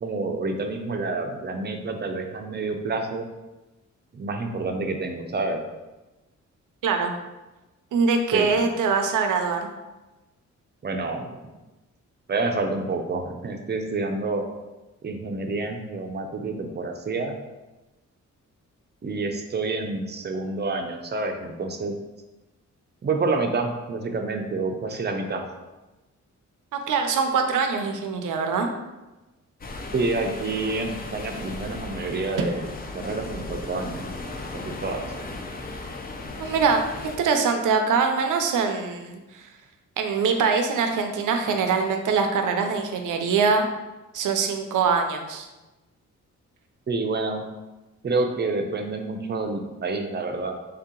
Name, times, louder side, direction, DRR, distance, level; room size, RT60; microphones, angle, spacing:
voice 1, 0.0-3.3 4.1-5.6 8.3-8.5 10.8-11.3 12.3-14.4 15.0-17.4 19.0-22.0 23.0-25.4 29.9-32.6 32.9-34.1 34.5-35.1 46.9-47.4 48.0-50.5, right 3 dB, 35° right, 4 dB, 0.5 m, -28 dB
voice 2, 7.9-9.7 26.7-28.7 36.4-39.5 40.0-43.7 44.1-45.5, right 5 dB, 90° right, 5 dB, 0.5 m, -23 dB
sound 1, 29.6-37.2, left 2 dB, 30° left, 0.5 m, -36 dB
3.4 x 2.8 x 3.7 m, 1.1 s
cardioid pair, 110°, 30 cm